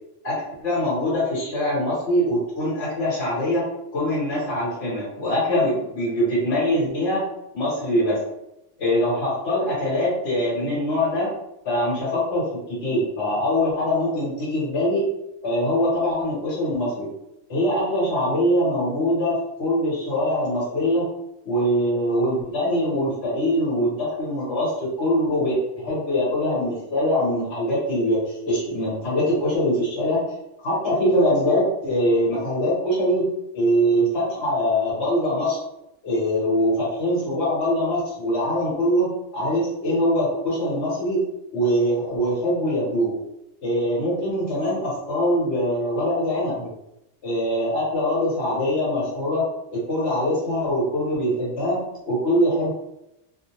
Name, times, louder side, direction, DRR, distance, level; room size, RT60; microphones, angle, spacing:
voice 1, 0.2-3.7 3.9-7.3 7.5-8.2 8.8-11.3 11.6-15.1 15.4-17.1 17.5-21.1 21.4-30.2 30.6-33.3 33.5-35.6 36.0-41.2 41.5-43.1 43.6-46.7 47.2-49.4 49.7-51.8 52.1-52.7, equal, 60° left, -7 dB, 1.3 m, -23 dB
2.5 x 2.2 x 2.9 m, 0.85 s
omnidirectional pair, 1.3 m